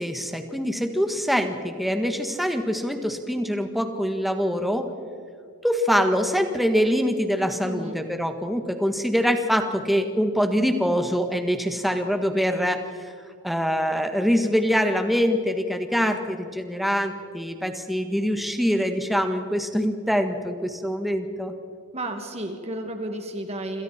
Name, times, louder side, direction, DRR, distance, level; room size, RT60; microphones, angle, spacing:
voice 1, 0.0-4.9 5.6-13.1 13.4-21.5, equal, ahead, 6 dB, 1.6 m, -24 dB
voice 2, 7.6-8.0 21.9-23.8, right 1 dB, 30° right, 4 dB, 2.5 m, -32 dB
27.0 x 27.0 x 4.4 m, 2.5 s
head